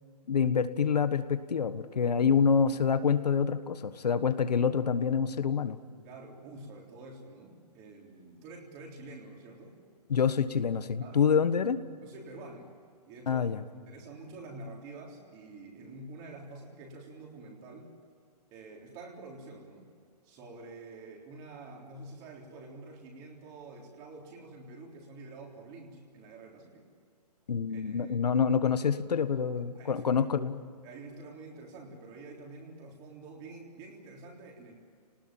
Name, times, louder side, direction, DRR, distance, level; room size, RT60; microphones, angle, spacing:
voice 1, 0.3-5.8 10.1-11.8 13.3-13.6 27.5-30.6, left 6 dB, 75° left, 11 dB, 1.5 m, -27 dB
voice 2, 6.0-9.8 11.0-11.3 12.0-12.7 13.1-13.4 13.7-17.9 18.5-19.9 20.2-26.9 27.7-28.1 29.7-30.1 30.8-34.7, right 2 dB, 20° right, 0 dB, 3.7 m, -47 dB
30.0 x 19.5 x 9.0 m, 2.3 s
hypercardioid pair, 170°, 21 cm